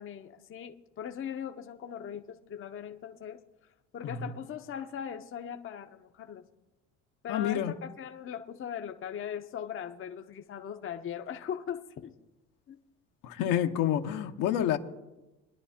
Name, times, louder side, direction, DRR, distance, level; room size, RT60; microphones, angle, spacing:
voice 1, 0.0-3.4 3.9-6.4 7.2-12.1 12.7-12.8, left 8 dB, 35° left, 0.9 m, -39 dB
voice 2, 7.3-7.7 13.2-14.8, left 10 dB, 65° left, 1.1 m, -28 dB
23.5 x 10.5 x 2.8 m
supercardioid pair, 80°, 34 cm